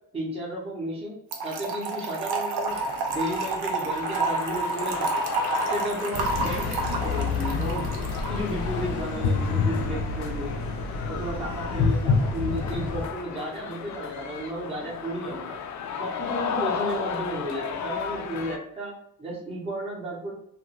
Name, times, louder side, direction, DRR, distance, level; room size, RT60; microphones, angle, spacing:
voice 1, 0.1-1.2 1.4-2.8 3.1-5.2 5.7-7.9 8.3-10.6 11.1-15.6 16.0-20.3, right 1 dB, 15° right, -3 dB, 0.8 m, -33 dB
Trickle dribble / Fill (with liquid), 1.3-8.4, right 3 dB, 80° right, 0.7 m, -29 dB
sound 1, 2.7-18.6, left 7 dB, 50° left, 0.4 m, -35 dB
sound 2, 6.1-13.1, left 4 dB, 90° left, 0.8 m, -28 dB
2.8 x 2.5 x 2.9 m, 0.74 s
cardioid pair, 155°, 38 cm